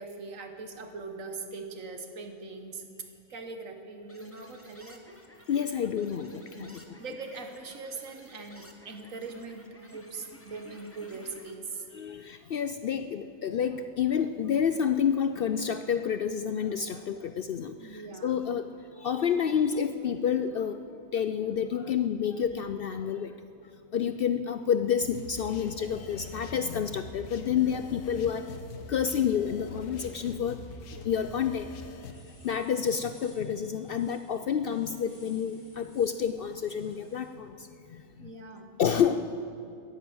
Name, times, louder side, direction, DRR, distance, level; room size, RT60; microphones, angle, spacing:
voice 1, 0.0-2.9 3.3-5.2 6.5-11.9 17.8-18.4 38.2-38.7, right 4 dB, 80° right, 6 dB, 1.7 m, -41 dB
sound 1, 4.1-11.6, left 1 dB, 10° left, 1.1 m, -53 dB
voice 2, 5.5-7.0 11.9-18.7 19.0-20.8 21.1-23.3 23.9-28.5 28.9-30.6 31.0-31.7 32.4-38.3 38.8-39.3, left 8 dB, 65° left, 10 dB, 0.6 m, -29 dB
sound 2, 25.0-32.1, left 3 dB, 90° left, 1.4 m, -44 dB
sound 3, 32.0-37.3, equal, 35° left, 3.1 m, -58 dB
14.0 x 10.0 x 8.6 m, 2.5 s
omnidirectional pair, 1.4 m